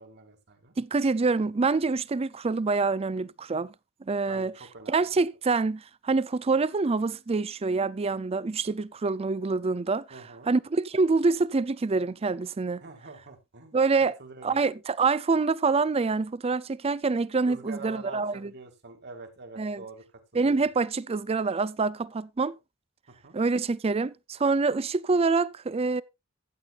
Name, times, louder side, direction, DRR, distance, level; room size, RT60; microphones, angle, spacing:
voice 1, 0.0-0.7 4.3-5.1 6.5-6.6 10.1-10.5 12.8-13.8 14.2-14.6 17.4-20.7 23.1-23.4, right 3 dB, 50° right, 2.2 m, -45 dB
voice 2, 0.8-3.7 4.1-4.5 4.9-10.0 10.5-12.8 13.7-14.2 14.4-18.5 19.6-19.8 20.3-22.6 23.3-26.0, right 4 dB, 30° right, 0.4 m, -26 dB
15.0 x 8.4 x 2.4 m
head